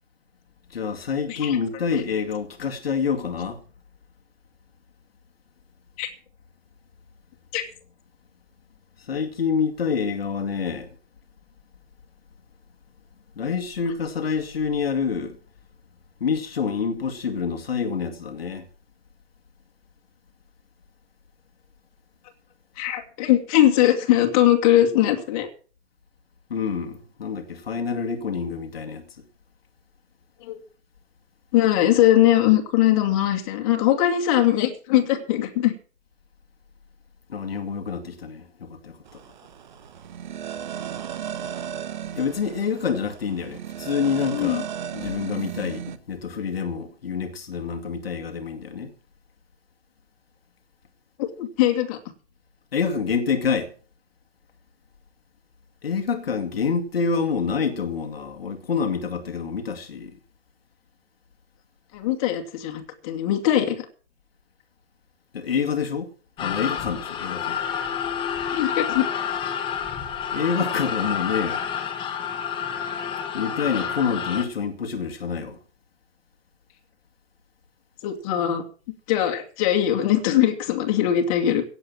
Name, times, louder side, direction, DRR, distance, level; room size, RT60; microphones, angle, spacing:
voice 1, 0.7-3.6 9.0-10.9 13.4-15.4 16.2-18.7 26.5-29.0 37.3-39.2 42.1-44.6 44.9-48.9 52.7-53.7 55.8-60.1 65.3-66.1 66.4-67.6 70.3-71.6 73.3-75.6, left 6 dB, 55° left, 2.2 m, -27 dB
voice 2, 22.8-25.5 30.4-30.6 31.5-35.7 44.3-44.6 51.2-52.0 61.9-63.9 68.5-69.1 78.0-78.6 79.1-81.6, left 12 dB, 30° left, 2.5 m, -21 dB
sound 1, 39.1-46.0, right 9 dB, 40° right, 1.1 m, -35 dB
sound 2, 66.4-74.4, left 8 dB, 15° left, 1.4 m, -29 dB
17.0 x 7.8 x 7.4 m
figure-of-eight pair, 125°, 35 cm